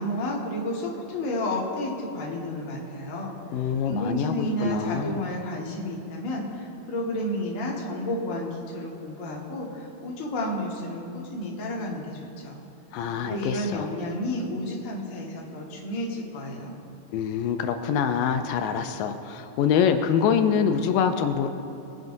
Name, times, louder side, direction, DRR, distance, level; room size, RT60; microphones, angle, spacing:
voice 1, 0.0-12.2 12.4-12.6 13.2-16.8, left 1 dB, 40° left, -4 dB, 1.1 m, -31 dB
voice 2, 3.5-5.2 12.9-13.9 17.1-21.5, left 7 dB, 80° left, 7 dB, 2.2 m, -25 dB
21.0 x 10.5 x 2.7 m, 2.9 s
omnidirectional pair, 4.0 m